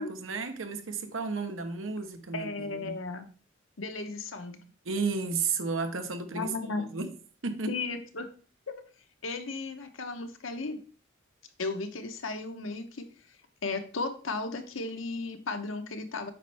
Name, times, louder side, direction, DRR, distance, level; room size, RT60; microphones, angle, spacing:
voice 1, 0.0-3.0 4.9-6.5 6.8-7.1 7.4-7.7, right 4 dB, 90° right, 1.0 m, -33 dB
voice 2, 2.3-3.3 3.8-4.6 6.3-6.9 7.7-8.3 8.7-8.8 9.2-10.8 11.6-13.0 13.6-16.3, left 3 dB, 80° left, 1.0 m, -35 dB
8.3 x 5.3 x 3.5 m
head